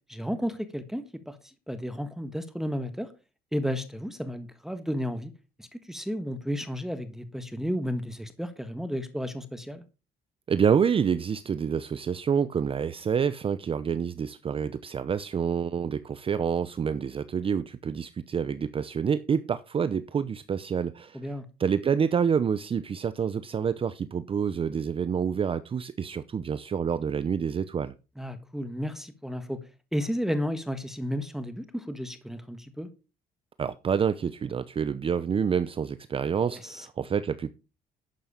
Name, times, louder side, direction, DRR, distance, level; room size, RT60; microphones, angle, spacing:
voice 1, 0.1-3.1 3.5-5.3 5.6-9.8 21.1-21.4 28.2-29.6 29.9-32.9 36.6-36.9, equal, ahead, 1.4 m, -33 dB
voice 2, 10.5-21.2 21.6-27.9 33.6-37.5, right 7 dB, 35° right, 0.7 m, -27 dB
11.5 x 8.0 x 5.1 m
cardioid pair, 110°, 17 cm